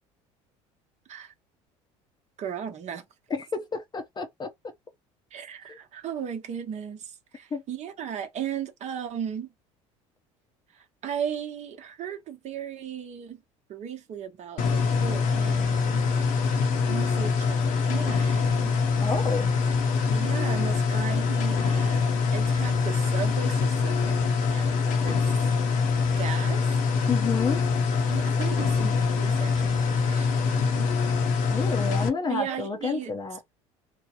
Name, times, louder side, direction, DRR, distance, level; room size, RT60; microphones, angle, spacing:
voice 1, 2.4-3.0 5.3-9.5 10.7-13.4 13.7-16.1 16.9-18.7 20.1-25.3 26.2-26.7 28.1-30.9 32.0-33.1, right 8 dB, 45° right, 0.9 m, -36 dB
voice 2, 3.3-4.5 5.7-5.8 7.5-7.6 19.0-19.5 27.1-27.6 31.5-33.4, left 4 dB, 25° left, 0.6 m, -30 dB
sound 1, 14.6-32.1, left 5 dB, 60° left, 0.8 m, -24 dB
3.2 x 2.1 x 2.9 m
hypercardioid pair, 80°, 16 cm